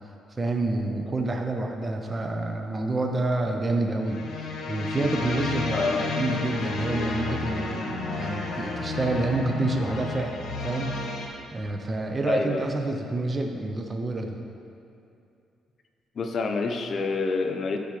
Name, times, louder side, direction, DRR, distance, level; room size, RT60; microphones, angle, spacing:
voice 1, 0.4-10.9 11.5-14.4, right 2 dB, 30° right, 3 dB, 0.6 m, -28 dB
sound 1, 4.0-11.3, left 3 dB, 70° left, 1.1 m, -31 dB
voice 2, 5.7-6.1 12.3-12.6 16.2-17.8, left 3 dB, 50° left, 4 dB, 0.7 m, -27 dB
12.5 x 5.0 x 3.2 m, 2.6 s
cardioid pair, 90°, 0 cm